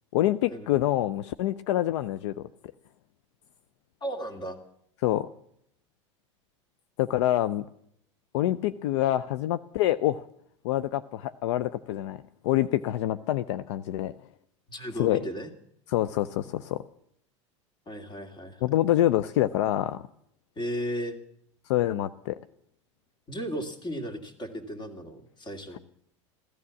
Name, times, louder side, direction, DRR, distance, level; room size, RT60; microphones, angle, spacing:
voice 1, 0.1-2.5 5.0-5.3 7.0-7.6 8.3-10.2 10.6-14.1 15.0-15.3 15.9-16.8 18.6-20.0 21.7-22.4, left 13 dB, 65° left, 13 dB, 0.5 m, -26 dB
voice 2, 4.0-4.6 14.7-15.5 17.9-18.6 20.6-21.2 23.3-25.8, equal, 30° left, 7 dB, 2.6 m, -35 dB
15.5 x 13.0 x 7.1 m, 0.70 s
hypercardioid pair, 85°, 16 cm